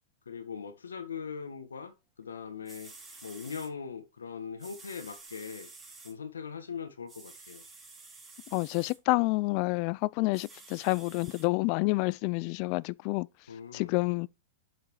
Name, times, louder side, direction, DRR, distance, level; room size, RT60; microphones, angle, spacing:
voice 1, 0.2-1.9 2.2-2.9 3.2-5.7 6.0-7.6 13.5-13.9, left 6 dB, 90° left, 1.7 m, -40 dB
sound 1, 2.4-2.5 2.7-3.7 4.6-6.1 7.1-9.0 10.3-11.5 12.1-12.2, right 3 dB, 15° right, 3.1 m, -50 dB
voice 2, 8.5-13.3 13.7-14.3, left 25 dB, 45° left, 0.4 m, -28 dB
7.9 x 5.1 x 4.8 m
hypercardioid pair, 115°, 0 cm